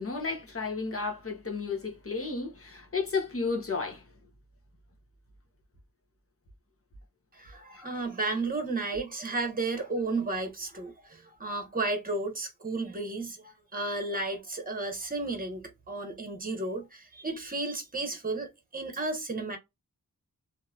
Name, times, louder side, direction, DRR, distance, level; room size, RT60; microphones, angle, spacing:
voice 1, 0.0-4.0 7.7-8.0 8.9-9.0, left 4 dB, 40° left, 0.9 m, -33 dB
voice 2, 7.3-19.6, right 3 dB, 25° right, 1.0 m, -33 dB
2.9 x 2.7 x 2.3 m
wide cardioid pair, 80°, 34 cm